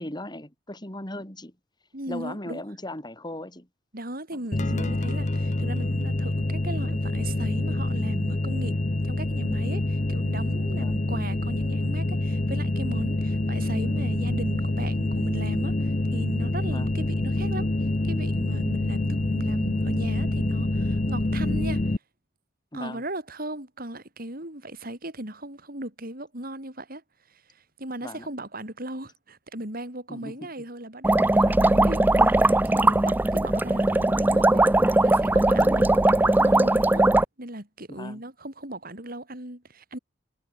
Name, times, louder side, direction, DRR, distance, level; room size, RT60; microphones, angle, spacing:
voice 1, 0.0-1.5 2.1-3.7 4.3-4.4 4.8-5.0 10.8-10.9 16.7-16.9 22.7-23.0 28.0-28.3 30.1-30.5 31.6-31.7 35.5-35.9 37.9-38.2, left 1 dB, 25° left, 4.9 m, -38 dB
voice 2, 1.9-2.6 3.9-8.8 9.0-17.7 18.0-22.0 22.7-27.0 27.3-34.6 35.0-37.1 37.4-40.0, right 1 dB, 50° right, 7.5 m, -37 dB
sound 1, 4.5-22.0, left 2 dB, 40° left, 0.9 m, -26 dB
sound 2, 31.0-37.3, right 2 dB, 10° right, 0.4 m, -20 dB
head